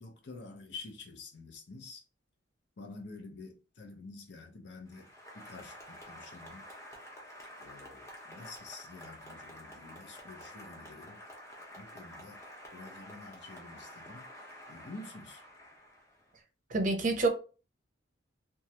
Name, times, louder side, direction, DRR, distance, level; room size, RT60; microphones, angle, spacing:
voice 1, 0.0-2.0 2.8-5.1 5.3-6.7 7.6-11.2 11.8-12.4 12.7-14.3 14.7-15.4, left 3 dB, 60° left, 0.7 m, -48 dB
Applause, 4.9-16.4, equal, 15° left, 0.8 m, -50 dB
voice 2, 16.7-17.3, right 3 dB, 40° right, 0.6 m, -27 dB
3.0 x 2.3 x 2.7 m
head